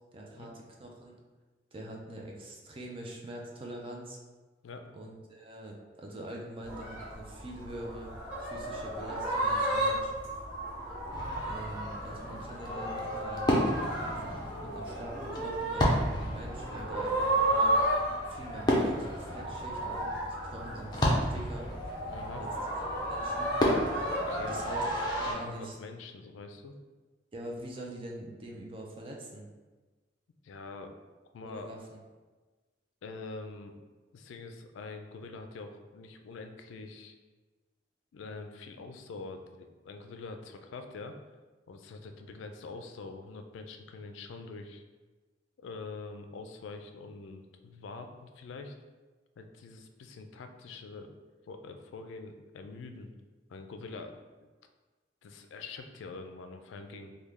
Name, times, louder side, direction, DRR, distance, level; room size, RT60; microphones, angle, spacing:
voice 1, 0.1-1.1 1.7-4.2 4.9-8.1 8.4-10.1 11.4-13.4 14.0-17.8 18.3-20.1 20.5-21.7 22.3-22.5 23.1-23.5 24.5-24.8 25.2-25.8 27.3-29.4 31.4-32.0, right 1 dB, 30° right, -1 dB, 0.4 m, -44 dB
sound 1, 6.6-25.3, right 1 dB, 10° right, 1.4 m, -33 dB
Fireworks, 11.1-25.3, equal, 25° left, 0.5 m, -33 dB
voice 2, 22.1-22.4 24.1-24.8 25.3-26.8 30.4-31.0 31.3-31.7 33.0-33.7 34.1-37.1 38.1-41.2 41.7-44.8 45.6-48.7 49.4-51.1 51.5-53.1 53.5-54.5 55.2-57.1, left 3 dB, 85° left, 6 dB, 0.3 m, -45 dB
3.1 x 2.3 x 3.5 m, 1.3 s
head